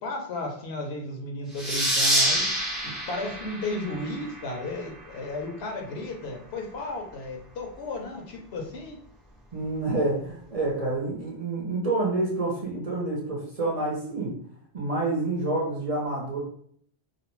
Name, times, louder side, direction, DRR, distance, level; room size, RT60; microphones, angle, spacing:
voice 1, 0.0-2.5 3.1-9.0, left 2 dB, 75° left, 1 dB, 0.9 m, -34 dB
sound 1, 1.6-4.8, equal, ahead, 0.5 m, -27 dB
voice 2, 9.5-14.3 14.7-16.4, right 2 dB, 45° right, -4 dB, 0.6 m, -28 dB
2.5 x 2.0 x 2.9 m, 0.63 s
omnidirectional pair, 1.1 m